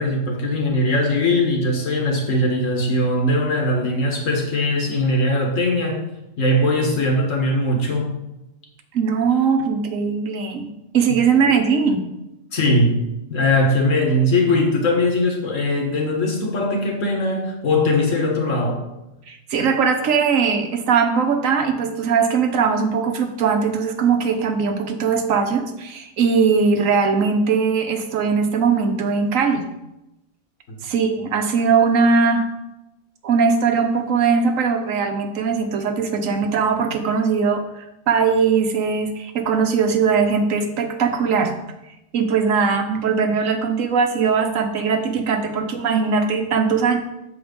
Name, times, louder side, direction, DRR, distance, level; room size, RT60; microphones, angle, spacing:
voice 1, 0.0-6.1 6.4-8.1 12.5-13.0 13.3-18.8 30.7-30.8, left 1 dB, 75° left, 1 dB, 1.8 m, -20 dB
voice 2, 8.9-12.0 19.3-29.6 30.8-32.5 33.2-41.5 42.1-47.0, right 5 dB, 80° right, 6 dB, 1.3 m, -20 dB
7.0 x 4.7 x 5.1 m, 0.91 s
omnidirectional pair, 1.3 m